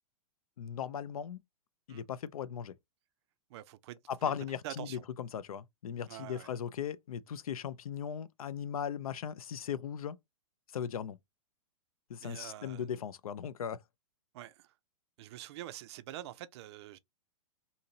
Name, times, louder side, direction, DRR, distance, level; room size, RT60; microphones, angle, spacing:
voice 1, 0.6-1.4 1.9-2.7 4.1-4.9 5.2-10.2 10.7-11.2 12.1-13.8, left 8 dB, 75° left, 0.4 m, -38 dB
voice 2, 3.5-4.3 4.6-5.0 6.1-6.5 12.2-13.0 14.3-14.7 15.2-17.0, right 14 dB, 45° right, 0.4 m, -46 dB
2.7 x 2.7 x 2.7 m
hypercardioid pair, 110°, 19 cm